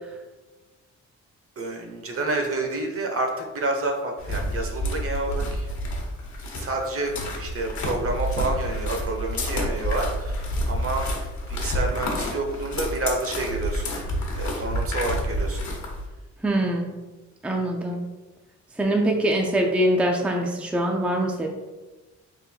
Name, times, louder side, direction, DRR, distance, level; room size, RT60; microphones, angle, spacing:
voice 1, 1.6-5.7 6.5-14.0 14.3-15.6, right 2 dB, 50° right, 3 dB, 0.8 m, -29 dB
sound 1, 4.2-16.1, equal, 75° left, 1.1 m, -29 dB
voice 2, 16.4-16.9 17.4-18.0 18.8-21.5, right 1 dB, 5° right, 1 dB, 0.4 m, -23 dB
3.8 x 2.5 x 4.3 m, 1.2 s
cardioid pair, 120°, 29 cm